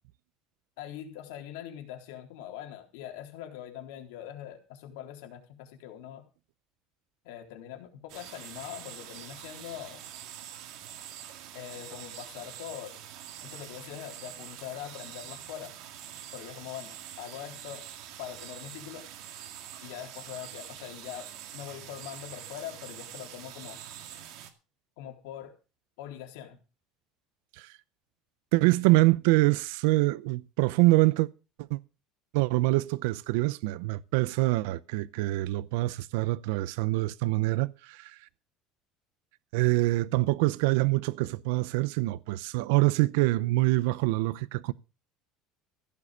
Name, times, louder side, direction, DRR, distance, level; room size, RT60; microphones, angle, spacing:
voice 1, 0.8-6.2 7.2-10.0 11.5-13.0 13.4-15.7 16.3-17.9 18.2-19.0 19.8-23.8 25.0-25.5 26.0-26.6, left 11 dB, 85° left, 3.8 m, -42 dB
sound 1, 8.1-24.5, right 11 dB, 50° right, 2.2 m, -45 dB
voice 2, 28.5-31.3 31.7-31.8 32.3-38.2 39.5-44.7, right 20 dB, 75° right, 0.6 m, -25 dB
15.5 x 7.5 x 6.7 m
cardioid pair, 175°, 0 cm